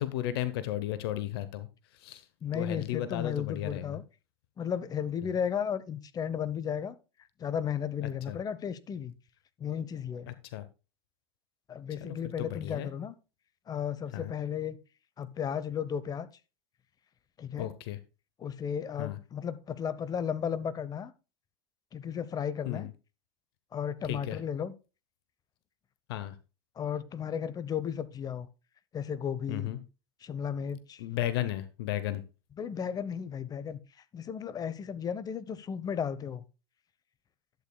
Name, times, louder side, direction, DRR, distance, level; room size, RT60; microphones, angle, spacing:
voice 1, 0.0-1.7 1.9-2.2 2.5-4.0 5.2-5.3 8.0-8.4 10.3-10.6 12.0-12.9 14.1-14.3 17.6-18.0 19.0-19.2 22.6-22.9 24.0-24.4 26.1-26.3 29.5-29.8 31.0-32.2, left 13 dB, 75° left, 0.9 m, -34 dB
voice 2, 2.4-4.0 4.6-7.0 7.4-9.1 9.6-10.3 11.7-13.1 13.7-14.8 15.2-16.3 17.4-17.7 18.4-21.1 21.9-22.9 23.7-24.7 26.8-28.5 28.9-29.7 30.2-31.0 32.6-33.8 34.1-36.4, left 8 dB, 30° left, 0.9 m, -34 dB
11.5 x 8.5 x 2.3 m
hypercardioid pair, 105°, 13 cm